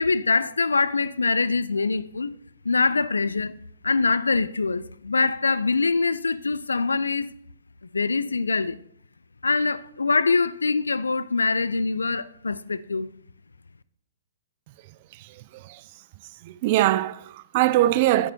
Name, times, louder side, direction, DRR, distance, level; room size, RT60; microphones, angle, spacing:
voice 1, 0.0-2.3 2.7-3.5 3.8-7.3 7.9-8.8 9.4-13.1, left 4 dB, 85° left, 0.3 m, -24 dB
voice 2, 16.4-18.3, right 15 dB, 45° right, 0.3 m, -22 dB
8.3 x 6.7 x 2.7 m
hypercardioid pair, 120°, 0 cm